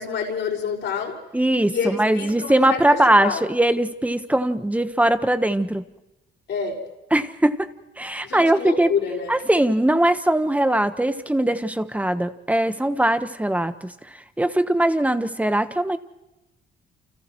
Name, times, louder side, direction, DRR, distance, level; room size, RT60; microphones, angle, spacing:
voice 1, 0.0-1.2 1.7-3.4 6.5-6.8 8.2-9.4, left 6 dB, 65° left, -1 dB, 5.7 m, -28 dB
voice 2, 1.3-5.8 7.1-7.7 8.0-8.9 9.3-13.9 14.4-16.0, right 1 dB, 5° right, 9 dB, 1.2 m, -20 dB
30.0 x 29.0 x 3.2 m, 0.97 s
cardioid pair, 90°, 20 cm